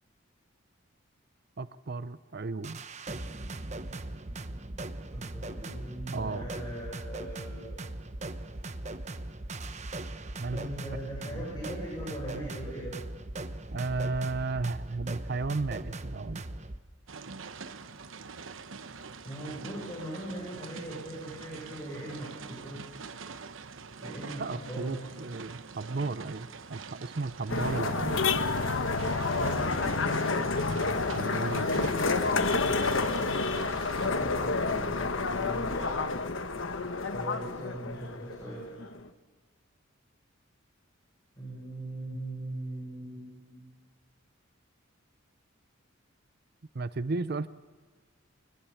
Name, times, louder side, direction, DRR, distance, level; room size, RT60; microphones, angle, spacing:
voice 1, 1.6-2.8 6.1-6.5 10.4-10.6 11.2-11.6 13.7-16.4 24.4-28.2 31.1-32.1 46.7-47.5, right 3 dB, 50° right, 15 dB, 0.6 m, -34 dB
sound 1, 2.6-16.8, right 2 dB, 35° right, 1.0 m, -39 dB
voice 2, 5.1-7.8 10.5-12.9 19.2-23.1 24.0-25.1 29.4-30.3 34.0-35.9 37.1-38.7 41.4-43.7, right 1 dB, 20° left, -5 dB, 7.3 m, -40 dB
sound 2, 17.1-34.1, right 5 dB, 70° right, 1.0 m, -45 dB
sound 3, 27.5-39.1, left 3 dB, 70° left, 1.3 m, -29 dB
23.0 x 21.5 x 7.1 m, 1.4 s
head